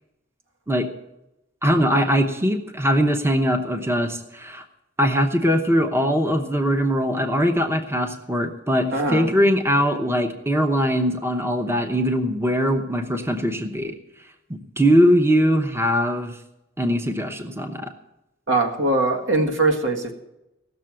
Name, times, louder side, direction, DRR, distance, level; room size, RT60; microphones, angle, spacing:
voice 1, 1.6-4.6 5.0-13.9 14.8-16.4 16.8-17.9, equal, 15° right, 5 dB, 0.9 m, -21 dB
voice 2, 8.9-9.3 18.5-20.1, right 2 dB, 90° right, 3 dB, 1.8 m, -21 dB
16.5 x 6.8 x 7.6 m, 0.92 s
head